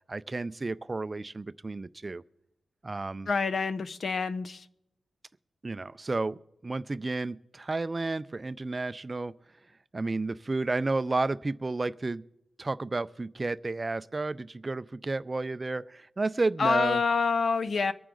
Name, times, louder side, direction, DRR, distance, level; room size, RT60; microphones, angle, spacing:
voice 1, 0.1-2.2 2.8-3.3 5.6-9.3 9.9-12.2 12.6-17.0, right 3 dB, 30° right, 0.4 m, -32 dB
voice 2, 3.3-4.6 16.6-17.9, left 5 dB, 55° left, 0.7 m, -27 dB
23.5 x 9.6 x 3.8 m
wide cardioid pair, 110°, 0 cm